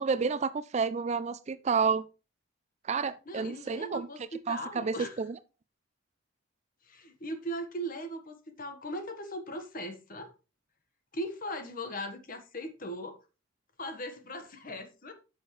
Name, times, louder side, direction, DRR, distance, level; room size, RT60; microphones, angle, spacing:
voice 1, 0.0-2.0 2.9-4.1 4.5-5.4, right 5 dB, 35° right, 0.3 m, -30 dB
voice 2, 3.3-5.2 6.8-10.3 11.1-13.1 13.8-15.1, equal, 45° left, 1.3 m, -39 dB
9.5 x 6.3 x 3.2 m
head